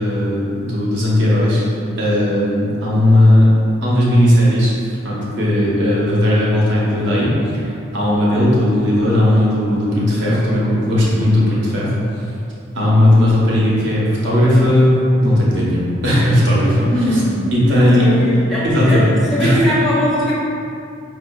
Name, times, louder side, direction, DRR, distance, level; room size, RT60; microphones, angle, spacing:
voice 1, 0.0-1.6 2.0-3.5 3.8-4.7 5.0-7.3 7.9-11.9 12.7-14.9 15.2-16.9 17.5-18.0 18.6-19.6, left 1 dB, 60° right, -6 dB, 0.8 m, -15 dB
voice 2, 16.9-17.4 17.7-20.3, left 1 dB, ahead, -8 dB, 0.5 m, -20 dB
4.3 x 2.3 x 2.2 m, 2.6 s
head